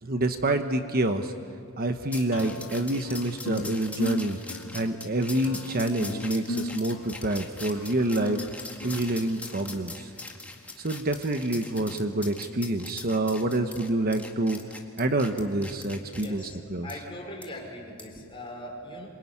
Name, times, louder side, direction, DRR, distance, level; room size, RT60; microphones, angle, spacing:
voice 1, 0.0-1.3 1.8-4.4 4.7-8.4 8.8-10.1 10.8-14.6 15.0-16.9, right 1 dB, 45° right, 7 dB, 1.1 m, -27 dB
sound 1, 2.1-16.3 16.9-17.0 17.4-17.5 18.0-18.2, left 2 dB, 5° left, 2.0 m, -42 dB
sound 2, 2.3-9.7, left 1 dB, 65° left, 1.1 m, -37 dB
voice 2, 16.2-16.6 16.8-19.1, left 1 dB, 25° left, 0 dB, 5.0 m, -40 dB
27.0 x 22.5 x 9.8 m, 2.4 s
head